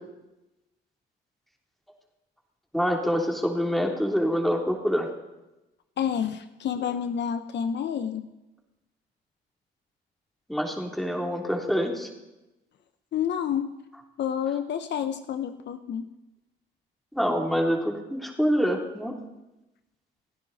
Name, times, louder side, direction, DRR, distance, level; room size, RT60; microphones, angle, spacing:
voice 1, 2.7-5.1 10.5-12.1 17.1-19.1, equal, ahead, 1 dB, 3.4 m, -26 dB
voice 2, 6.0-8.3 13.1-13.8 14.2-16.1, left 8 dB, 65° left, 9 dB, 0.9 m, -29 dB
29.5 x 10.0 x 4.2 m, 0.98 s
cardioid pair, 90°, 20 cm